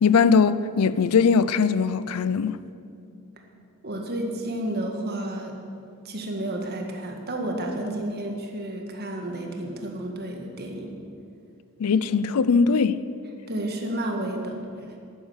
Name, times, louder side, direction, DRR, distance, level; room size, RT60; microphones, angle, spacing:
voice 1, 0.0-2.6 11.8-13.0, left 5 dB, 80° left, 0.5 m, -20 dB
voice 2, 3.8-5.5 6.1-11.0 13.5-14.6, right 1 dB, 45° right, 1.7 m, -31 dB
11.0 x 9.7 x 7.3 m
head